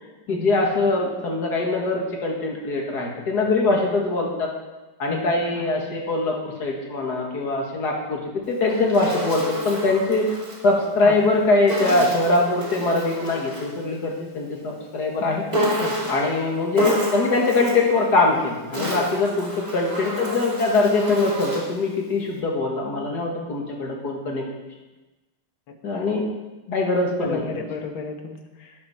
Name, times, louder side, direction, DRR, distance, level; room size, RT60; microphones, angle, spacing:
voice 1, 0.3-4.5 5.0-10.4 10.6-15.4 16.1-24.4 25.8-26.2 26.7-27.5, left 2 dB, 50° left, -1 dB, 2.4 m, -22 dB
Insect, 8.4-10.6 11.7-13.8 15.5-16.3 16.7-17.9 18.5-21.8, equal, 20° right, 2.6 m, -29 dB
voice 2, 15.8-16.1 25.7-25.8 27.2-28.7, left 4 dB, 70° left, 4 dB, 2.0 m, -33 dB
12.0 x 9.9 x 4.4 m, 1.1 s
omnidirectional pair, 2.4 m